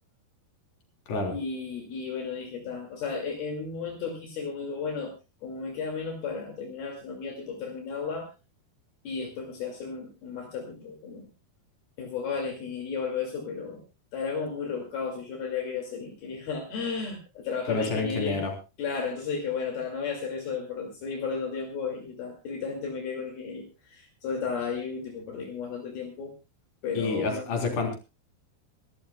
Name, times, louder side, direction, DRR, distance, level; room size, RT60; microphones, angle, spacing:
voice 1, 1.3-5.1 5.4-8.3 9.0-11.3 12.0-13.8 14.1-18.4 18.8-26.3 26.8-27.4, left 5 dB, 70° left, 1 dB, 4.4 m, -33 dB
voice 2, 17.7-18.5 26.9-28.0, left 3 dB, 50° left, 3 dB, 5.1 m, -29 dB
25.5 x 13.5 x 2.3 m, 0.29 s
omnidirectional pair, 4.6 m